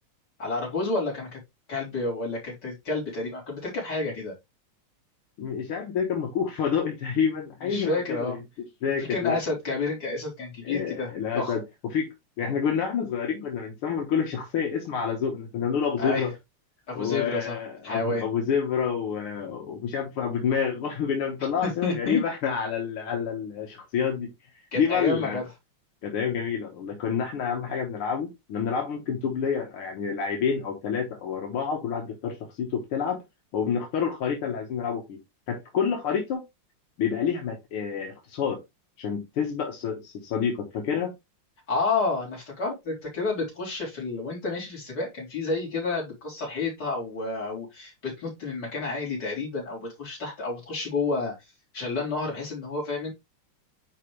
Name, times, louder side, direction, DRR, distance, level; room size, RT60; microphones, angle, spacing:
voice 1, 0.4-1.4 1.7-4.3 7.6-8.4 9.1-11.5 16.0-16.3 16.9-17.6 17.8-18.3 21.6-22.2 24.7-25.4 41.7-51.3 51.7-53.1, left 3 dB, 50° left, 4.3 m, -30 dB
voice 2, 5.4-8.4 8.8-9.4 10.6-11.6 11.9-12.1 12.4-16.3 16.9-24.3 24.8-25.4 26.0-33.2 33.5-35.2 35.5-36.4 37.0-38.6 39.0-41.1, left 7 dB, 85° left, 2.1 m, -28 dB
9.9 x 3.5 x 3.1 m
omnidirectional pair, 2.4 m